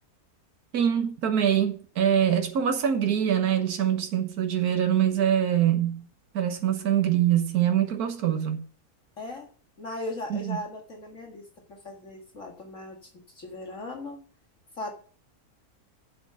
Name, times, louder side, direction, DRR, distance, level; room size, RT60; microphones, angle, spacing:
voice 1, 0.7-6.1 6.3-8.6 10.3-10.6, right 9 dB, 85° right, 1.7 m, -24 dB
voice 2, 9.2-9.5 9.8-14.2 14.8-14.9, left 2 dB, 55° left, 2.2 m, -38 dB
7.8 x 7.7 x 6.9 m
omnidirectional pair, 1.6 m